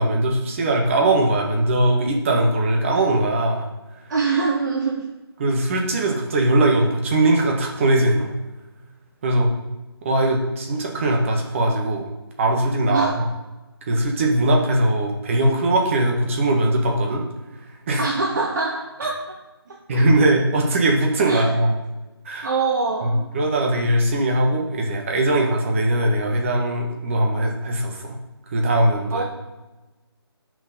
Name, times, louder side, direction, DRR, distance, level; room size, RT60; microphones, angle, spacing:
voice 1, 0.0-3.7 5.4-8.3 9.2-9.5 10.0-12.1 12.4-13.3 13.9-17.2 17.9-18.1 19.9-21.8 22.3-22.5 23.0-28.2 28.5-29.2, right 1 dB, 30° right, 1 dB, 1.7 m, -20 dB
voice 2, 4.1-5.1 12.9-13.2 18.0-19.3 19.7-19.8 21.2-21.5 22.4-23.3 29.1-29.2, right 4 dB, 45° right, 0 dB, 1.2 m, -24 dB
9.3 x 6.4 x 5.3 m, 1.1 s
figure-of-eight pair, 155°, 14 cm